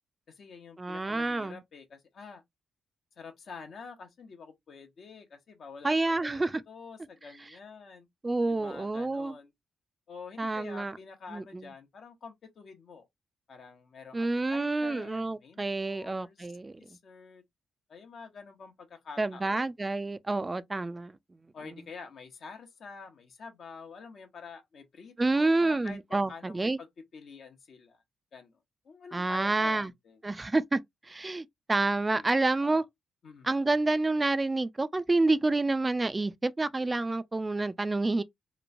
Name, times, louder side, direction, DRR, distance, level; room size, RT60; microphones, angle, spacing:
voice 1, 0.3-2.4 3.2-5.9 6.2-8.1 8.5-9.5 10.1-13.1 13.5-16.5 16.8-17.4 17.9-19.7 21.5-26.9 27.1-28.0 28.3-28.6 28.8-30.2 32.1-32.3 32.6-32.8 33.2-33.5, left 5 dB, 65° left, 0.7 m, -47 dB
voice 2, 0.8-1.6 5.8-6.6 8.2-9.4 10.4-11.0 11.3-11.7 14.1-16.7 19.2-21.2 25.2-26.8 29.1-29.9 30.2-32.8 33.4-38.2, right 2 dB, 30° right, 0.3 m, -28 dB
3.0 x 2.2 x 2.5 m
supercardioid pair, 50°, 0 cm